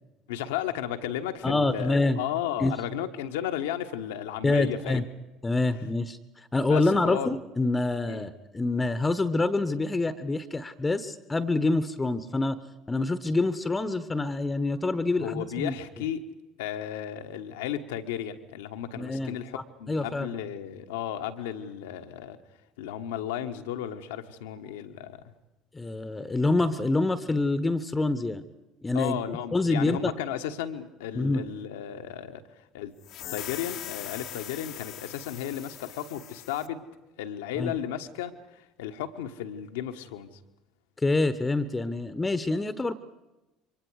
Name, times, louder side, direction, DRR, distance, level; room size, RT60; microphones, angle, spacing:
voice 1, 0.3-5.0 5.6-5.7 6.6-7.3 8.1-8.3 15.2-16.2 16.6-22.4 22.8-25.2 28.9-32.9 33.3-36.9 37.2-40.4, left 10 dB, 70° left, 7 dB, 1.4 m, -34 dB
voice 2, 1.4-2.2 2.6-2.7 4.4-5.0 5.4-6.2 6.5-12.6 12.9-15.7 18.9-19.4 19.9-20.3 25.7-28.4 28.8-29.2 29.5-30.1 31.1-31.4 37.6-37.7 41.0-42.9, left 2 dB, 15° left, 13 dB, 1.2 m, -26 dB
sound 1, 33.0-36.7, left 12 dB, 55° left, 1.2 m, -41 dB
28.5 x 24.5 x 4.9 m, 1.0 s
figure-of-eight pair, 60°, 0 cm